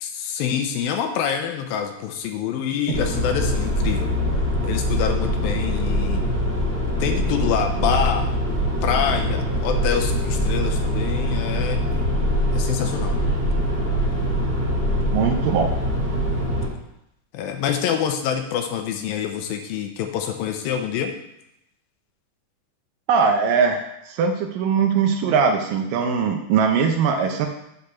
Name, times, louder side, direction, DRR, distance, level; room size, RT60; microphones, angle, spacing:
voice 1, 0.0-4.1 4.6-6.2 7.0-8.2 8.8-11.8 12.5-13.1 17.3-21.1, left 8 dB, 80° left, 5 dB, 2.5 m, -26 dB
sound 1, 2.9-16.7, equal, 20° right, 1.7 m, -23 dB
voice 2, 15.1-15.7 23.1-27.5, right 6 dB, 75° right, 4 dB, 2.2 m, -21 dB
8.3 x 5.1 x 5.9 m, 0.81 s
omnidirectional pair, 4.4 m